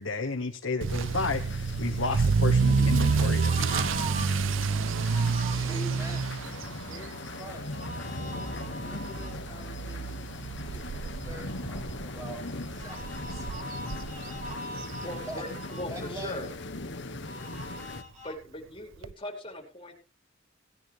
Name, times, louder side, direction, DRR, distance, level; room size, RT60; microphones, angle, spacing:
voice 1, 0.0-4.0, left 3 dB, 85° left, 1.3 m, -32 dB
Motor vehicle (road) / Accelerating revving vroom, 0.8-15.7 16.0-16.3 16.9-17.0 17.3-17.4 17.6-17.7 19.0-19.1, right 4 dB, 75° right, 0.5 m, -29 dB
sound 1, 0.9-18.0, left 2 dB, 65° left, 1.5 m, -40 dB
sound 2, 2.6-4.3 4.8-5.5 7.7-9.4 12.8-15.9 17.2-18.4, right 1 dB, 35° right, 2.7 m, -41 dB
voice 2, 5.5-6.5 6.8-7.8 8.6-13.5 13.9-15.4 15.9-16.5, right 1 dB, 15° right, 7.8 m, -45 dB
voice 3, 15.0-16.5 18.2-19.9, left 1 dB, 25° left, 4.5 m, -39 dB
18.0 x 11.0 x 3.2 m
head